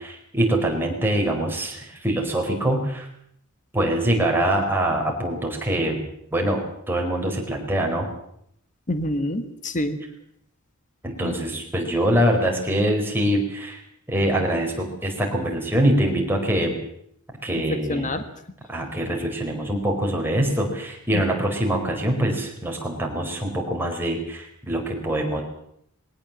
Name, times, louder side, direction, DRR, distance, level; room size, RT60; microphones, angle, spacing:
voice 1, 0.0-3.1 3.7-6.0 6.3-8.1 11.0-13.8 14.1-16.8 17.4-18.2 18.7-25.4, right 1 dB, 10° right, 1 dB, 4.6 m, -24 dB
voice 2, 8.9-10.0 11.2-11.4 17.7-18.2 21.1-21.2, left 1 dB, 35° left, 10 dB, 1.7 m, -27 dB
21.5 x 18.0 x 7.5 m, 0.71 s
head